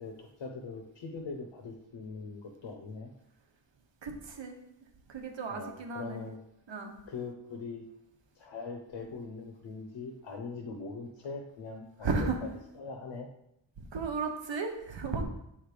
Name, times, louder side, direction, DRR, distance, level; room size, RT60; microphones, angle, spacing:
voice 1, 0.0-3.1 5.5-6.4 7.1-7.9 8.4-12.3 12.7-13.3, left 4 dB, 85° left, 2 dB, 0.8 m, -41 dB
voice 2, 4.0-4.6 5.1-6.2 6.7-7.0 12.0-12.4 13.8-15.2, right 4 dB, 75° right, 4 dB, 1.0 m, -34 dB
7.2 x 3.3 x 4.9 m, 0.81 s
wide cardioid pair, 135°, 44 cm